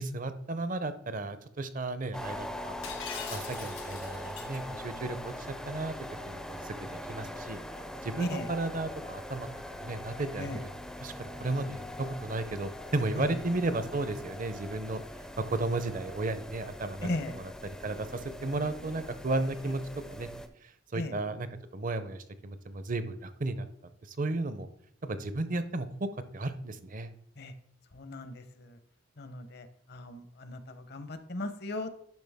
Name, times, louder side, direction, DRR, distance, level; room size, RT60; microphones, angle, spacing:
voice 1, 0.0-2.7 3.3-5.9 6.3-7.6 8.0-10.7 11.0-15.0 15.4-19.8 20.1-20.3 20.6-21.5 21.7-23.7 24.1-24.7 25.0-27.1, right 2 dB, 40° right, 11 dB, 0.6 m, -34 dB
sound 1, 2.1-20.5, left 1 dB, 5° left, 0.4 m, -42 dB
Shatter, 2.8-4.6, left 6 dB, 80° left, 2.0 m, -42 dB
voice 2, 17.0-17.3 20.9-21.1 27.4-27.5 27.9-28.7 29.2-31.9, left 2 dB, 55° left, 10 dB, 0.8 m, -37 dB
10.5 x 6.0 x 3.5 m, 0.67 s
head